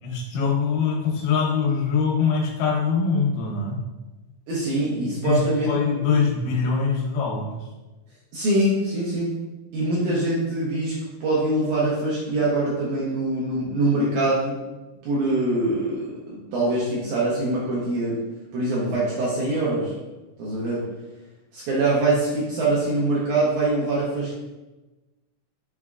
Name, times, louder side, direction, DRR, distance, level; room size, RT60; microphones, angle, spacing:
voice 1, 0.0-3.8 5.2-7.5, left 5 dB, 80° left, -2 dB, 2.7 m, -23 dB
voice 2, 4.5-5.7 6.0-6.2 8.3-9.3 9.7-10.9 11.2-14.6 15.0-18.2 18.5-19.9 20.4-20.8 21.5-24.3, right 2 dB, 75° right, -6 dB, 1.9 m, -23 dB
5.9 x 3.4 x 2.4 m, 1.1 s
omnidirectional pair, 4.3 m